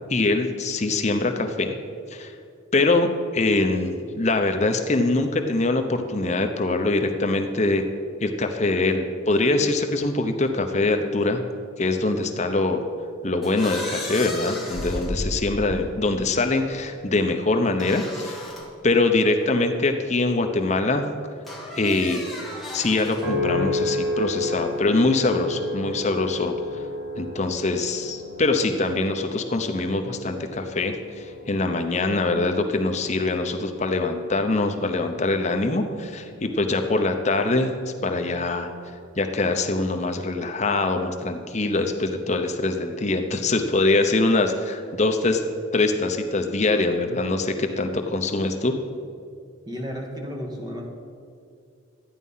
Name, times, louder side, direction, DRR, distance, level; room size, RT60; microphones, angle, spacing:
voice 1, 0.1-1.7 2.1-2.3 2.7-7.8 8.2-11.4 11.8-12.9 13.2-18.5 18.8-21.1 21.7-22.2 22.7-26.5 27.2-37.7 38.0-38.7 39.2-45.4 45.7-48.7, left 2 dB, 35° left, 5 dB, 0.7 m, -23 dB
sound 1, 13.4-16.3 17.8-18.7 19.4-19.5 21.5-23.3, left 1 dB, ahead, 1.5 m, -34 dB
sound 2, 23.2-37.7 38.2-38.6, left 1 dB, 65° right, 2.9 m, -33 dB
voice 2, 49.7-50.9, equal, 20° right, 0 dB, 1.6 m, -33 dB
13.0 x 9.5 x 5.6 m, 2.4 s
head